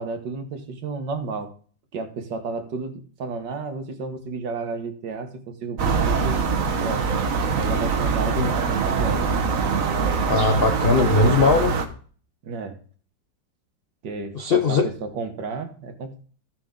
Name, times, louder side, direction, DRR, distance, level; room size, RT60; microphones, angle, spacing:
voice 1, 0.0-1.5 1.9-6.4 6.8-7.1 7.5-9.3 9.6-9.9 12.4-12.8 14.0-16.2, right 4 dB, 70° right, 7 dB, 1.8 m, -32 dB
sound 1, 5.8-11.9, right 5 dB, 50° right, 1.3 m, -23 dB
voice 2, 10.3-11.8 14.3-14.9, left 4 dB, 60° left, 6 dB, 0.6 m, -20 dB
14.0 x 6.8 x 3.8 m, 0.43 s
omnidirectional pair, 2.0 m